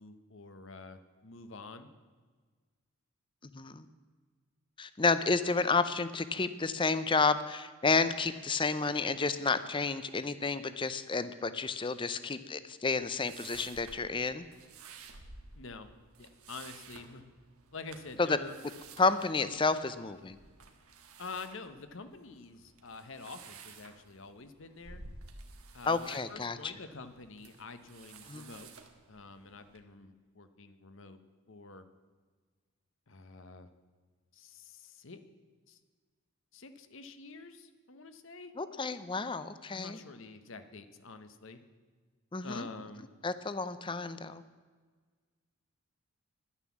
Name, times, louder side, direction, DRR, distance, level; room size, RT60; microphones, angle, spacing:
voice 1, 0.0-1.9 15.5-15.9 16.2-17.2 17.7-18.6 21.2-25.0 25.7-28.7 29.1-31.2 31.5-31.8 33.1-33.7 34.3-35.2 35.7-35.8 36.5-38.5 39.7-41.6 42.4-43.1, left 4 dB, 60° left, 10 dB, 0.9 m, -47 dB
voice 2, 3.5-3.9 4.8-14.4 18.2-18.4 19.0-20.4 25.9-26.7 28.3-28.4 38.6-40.0 42.3-42.7 43.2-44.4, left 4 dB, 20° left, 13 dB, 0.5 m, -31 dB
sound 1, 12.8-29.8, right 4 dB, 80° right, 1.4 m, -53 dB
11.5 x 9.8 x 7.2 m, 1.5 s
head